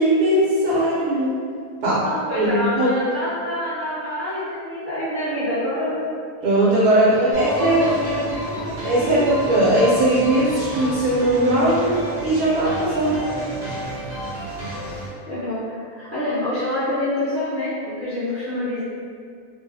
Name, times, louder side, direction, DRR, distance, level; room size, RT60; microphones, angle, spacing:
voice 1, 0.0-1.3 1.8-2.0 2.3-2.9 6.4-8.1 8.8-13.2, right 1 dB, 80° right, -7 dB, 1.1 m, -19 dB
voice 2, 2.0-6.0 6.9-9.2 15.3-18.8, left 1 dB, 20° right, -12 dB, 0.3 m, -27 dB
sound 1, 7.3-15.1, equal, 50° right, 0.9 m, -31 dB
2.7 x 2.3 x 2.6 m, 2.2 s
omnidirectional pair, 1.6 m